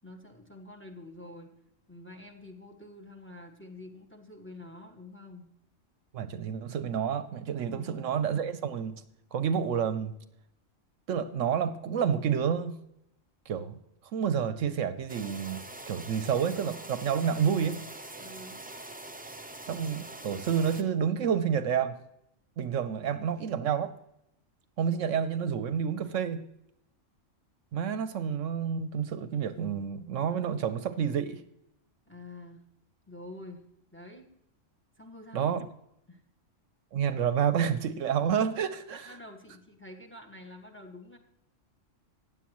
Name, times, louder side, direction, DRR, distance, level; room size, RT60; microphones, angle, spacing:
voice 1, 0.0-1.5 1.9-5.5 7.7-7.9 18.2-18.6 32.1-32.6 33.1-33.6 33.9-34.3 35.0-35.6 36.1-36.2 38.9-41.2, left 1 dB, 10° left, 3 dB, 1.5 m, -47 dB
voice 2, 6.1-9.0 9.3-10.2 11.1-12.8 13.5-13.8 14.1-17.8 19.7-21.9 22.6-23.9 24.8-26.4 27.7-31.4 35.3-35.7 36.9-39.0, right 7 dB, 75° right, 12 dB, 1.0 m, -29 dB
sound 1, 15.1-20.8, right 2 dB, 10° right, 0.4 m, -44 dB
15.5 x 9.8 x 3.0 m, 0.80 s
omnidirectional pair, 1.4 m